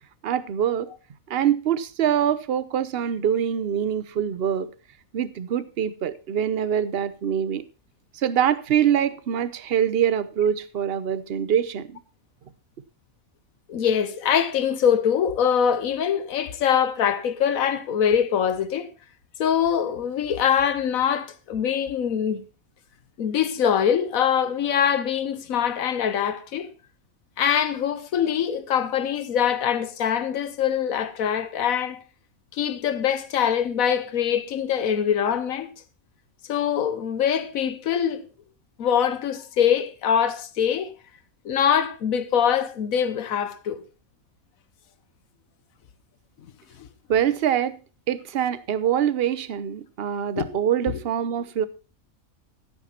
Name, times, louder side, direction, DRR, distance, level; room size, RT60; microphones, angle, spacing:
voice 1, 0.2-0.9 1.3-4.7 5.1-7.6 8.1-12.0 47.1-47.8 48.1-51.7, right 9 dB, 50° right, 0.9 m, -24 dB
voice 2, 13.7-18.9 19.4-22.4 23.2-26.7 27.4-32.0 32.5-35.7 36.5-38.2 38.8-40.9 41.4-43.8 46.8-46.9 50.4-50.5 50.9-51.0, left 8 dB, 75° left, 1.4 m, -23 dB
14.0 x 8.3 x 4.3 m
omnidirectional pair, 1.5 m